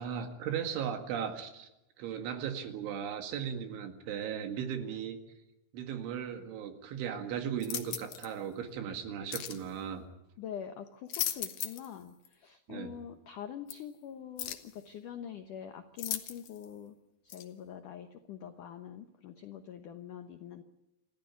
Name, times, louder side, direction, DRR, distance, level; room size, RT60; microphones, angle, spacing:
voice 1, 0.0-1.7 2.0-5.2 5.7-10.0 12.7-13.0, right 8 dB, 85° right, 6 dB, 4.4 m, -37 dB
sound 1, 7.6-8.3 9.3-9.6 10.9-11.9 12.2-12.3 13.7-13.8 14.4-14.7 16.0-16.6 17.3-17.4, left 11 dB, 65° left, 2.4 m, -37 dB
voice 2, 10.4-17.0 17.2-20.6, left 9 dB, 80° left, 7 dB, 1.8 m, -45 dB
27.5 x 14.5 x 9.4 m, 0.93 s
omnidirectional pair, 5.4 m